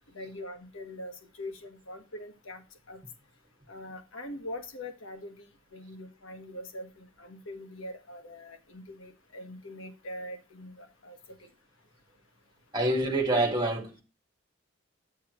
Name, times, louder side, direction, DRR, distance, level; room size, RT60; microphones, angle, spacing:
voice 1, 0.1-2.6 2.9-3.0 3.7-5.5 5.7-11.4, left 1 dB, 80° left, 1.3 m, -43 dB
voice 2, 12.7-14.0, right 1 dB, 20° right, 2.0 m, -26 dB
8.5 x 7.1 x 3.1 m
head